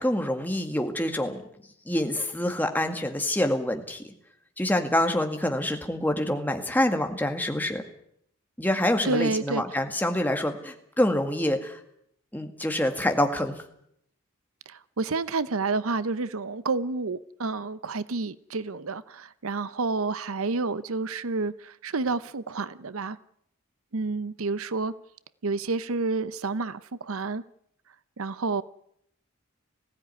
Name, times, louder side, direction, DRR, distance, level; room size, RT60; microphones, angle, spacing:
voice 1, 0.0-1.4 1.9-4.1 4.6-7.8 8.6-11.8 12.3-13.6, left 1 dB, 10° left, 2.0 m, -26 dB
voice 2, 9.0-9.6 14.7-23.2 23.9-24.9 25.4-27.4 28.2-28.6, right 3 dB, 70° right, 0.8 m, -29 dB
20.0 x 16.0 x 9.7 m
head